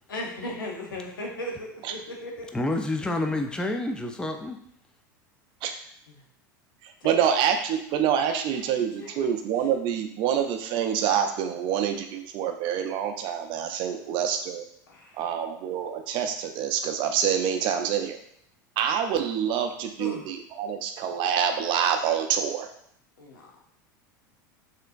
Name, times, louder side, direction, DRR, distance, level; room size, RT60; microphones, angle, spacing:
voice 1, 0.1-2.5 6.1-6.2 7.0-7.4 8.2-8.7 9.0-9.3 13.9-14.2 14.9-15.3 20.0-20.3 23.2-23.6, left 1 dB, 90° left, 0 dB, 0.7 m, -38 dB
voice 2, 2.5-4.6, left 2 dB, 10° left, 4 dB, 0.4 m, -28 dB
voice 3, 7.0-14.6 15.2-18.2 18.8-22.7, right 8 dB, 50° right, 5 dB, 0.5 m, -26 dB
3.2 x 2.9 x 2.5 m, 0.71 s
hypercardioid pair, 90°, 11 cm